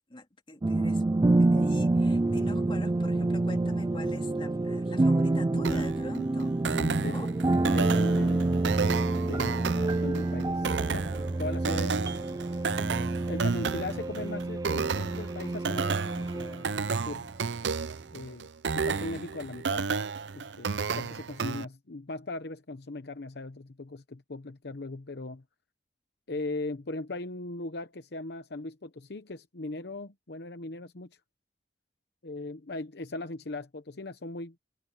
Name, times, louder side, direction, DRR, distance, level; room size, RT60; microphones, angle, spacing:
voice 1, 0.1-1.0 1.4-7.3, left 1 dB, 30° left, 2.6 m, -43 dB
sound 1, 0.6-17.2, right 2 dB, 20° right, 0.3 m, -28 dB
sound 2, 5.6-21.6, right 5 dB, 85° right, 0.7 m, -32 dB
voice 2, 6.7-7.2 7.6-8.7 9.2-11.1 11.4-12.0 13.3-16.7 17.0-17.3 18.1-19.9 20.3-25.4 26.3-31.1 32.2-34.6, left 2 dB, 65° left, 0.9 m, -39 dB
head